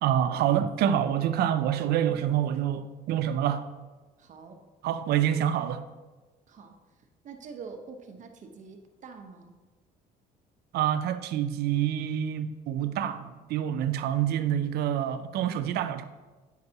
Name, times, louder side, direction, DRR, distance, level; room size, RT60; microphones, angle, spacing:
voice 1, 0.0-3.7 4.8-5.8 10.7-16.0, right 10 dB, 70° right, 0.5 m, -27 dB
voice 2, 4.2-4.6 6.5-6.8 7.2-9.5, right 5 dB, 45° right, 0.9 m, -45 dB
9.3 x 5.3 x 2.9 m
cardioid pair, 110°, 17 cm